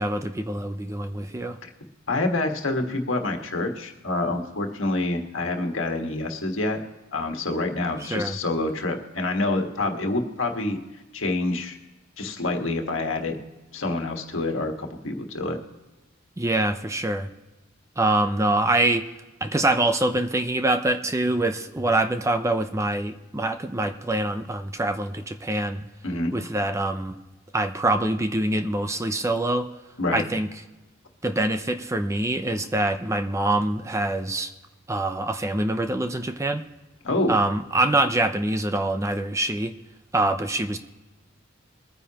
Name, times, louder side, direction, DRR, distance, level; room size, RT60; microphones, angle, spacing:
voice 1, 0.0-1.6 8.0-8.4 16.4-17.3 18.0-19.1 19.4-25.9 26.3-27.2 27.5-29.7 30.1-30.5 31.2-34.5 34.9-36.7 37.3-39.7 40.1-40.8, right 2 dB, 15° right, 8 dB, 0.6 m, -25 dB
voice 2, 2.1-6.8 7.1-10.8 11.1-11.8 12.2-13.4 13.7-15.6 26.0-26.3 30.0-30.2 37.0-37.4, left 2 dB, 70° left, 3 dB, 1.6 m, -27 dB
22.5 x 9.6 x 3.0 m, 1.1 s
head